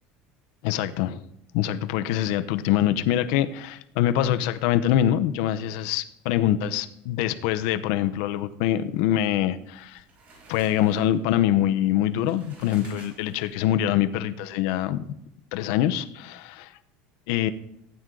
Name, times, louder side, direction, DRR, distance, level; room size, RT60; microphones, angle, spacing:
voice 1, 0.6-1.2 1.5-10.0 10.5-15.0 15.5-16.7 17.3-17.5, left 11 dB, 75° left, 11 dB, 0.8 m, -24 dB
sound 1, 9.6-13.8, right 3 dB, 45° right, 5.6 m, -52 dB
15.5 x 9.1 x 3.8 m, 0.77 s
cardioid pair, 155°, 4 cm